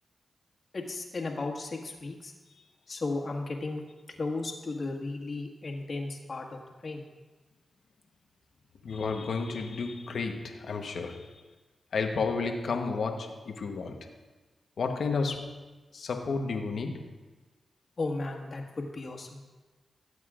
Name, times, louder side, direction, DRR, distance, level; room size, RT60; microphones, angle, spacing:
voice 1, 0.7-2.3 2.9-3.8 4.2-7.1 18.0-19.5, left 3 dB, 55° left, 0 dB, 1.7 m, -35 dB
voice 2, 8.8-11.4 11.9-14.1 14.8-15.6 15.9-17.0, left 4 dB, 75° left, 4 dB, 1.1 m, -32 dB
17.5 x 7.9 x 2.5 m, 1.3 s
cardioid pair, 50°, 0 cm